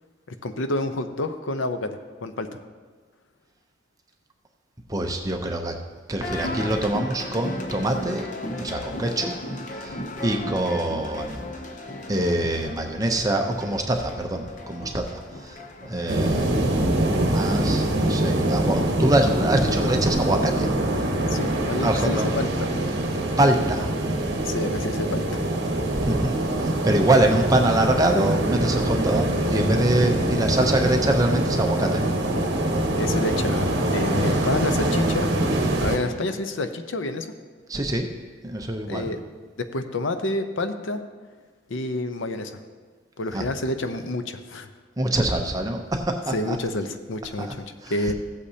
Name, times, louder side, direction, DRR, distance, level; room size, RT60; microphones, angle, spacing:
voice 1, 0.3-2.6 21.3-22.7 24.4-25.4 32.9-35.3 35.8-37.3 38.9-39.2 39.6-41.0 41.7-42.6 43.2-44.7 46.3-47.6 47.9-48.1, left 2 dB, 80° left, 8 dB, 0.7 m, -28 dB
voice 2, 4.9-5.8 6.1-8.3 8.6-9.4 9.8-10.0 10.2-11.4 12.1-16.6 17.2-20.7 21.8-22.3 23.4-23.9 26.0-32.2 37.7-38.1 38.4-39.1 43.3-43.4 45.0-46.6 47.4-47.5 47.8-48.1, right 1 dB, 20° right, 3 dB, 0.6 m, -24 dB
sound 1, 6.2-16.9, left 1 dB, 40° left, 0.7 m, -35 dB
sound 2, 16.1-36.0, right 1 dB, 55° right, 1.2 m, -24 dB
15.5 x 8.4 x 2.8 m, 1.5 s
head